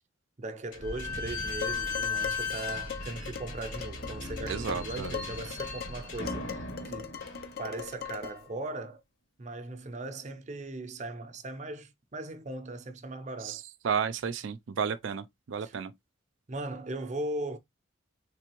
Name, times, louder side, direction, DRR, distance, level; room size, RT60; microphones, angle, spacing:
voice 1, 0.4-7.2 7.6-9.0 9.4-13.6 15.6-15.8 16.5-17.6, right 2 dB, 40° right, 0.6 m, -38 dB
Slam / Squeak, 0.7-8.0, left 3 dB, 80° left, 2.5 m, -36 dB
Dishes pots and pans, 1.6-8.5, left 8 dB, 50° left, 0.5 m, -41 dB
voice 2, 4.5-5.2 13.4-13.6 13.8-15.9, right 6 dB, 80° right, 0.4 m, -32 dB
3.7 x 3.3 x 3.0 m
head